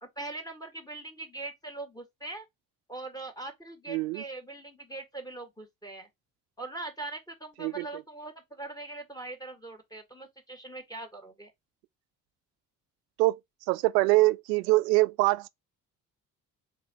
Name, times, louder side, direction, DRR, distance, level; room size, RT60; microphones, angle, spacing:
voice 1, 0.0-2.4 2.9-6.1 6.6-11.5, right 2 dB, 5° left, 1.6 m, -41 dB
voice 2, 3.9-4.2 7.6-7.9 13.2-13.4 13.7-15.5, right 20 dB, 70° right, 0.5 m, -24 dB
3.9 x 3.9 x 2.9 m
figure-of-eight pair, 45°, 50 cm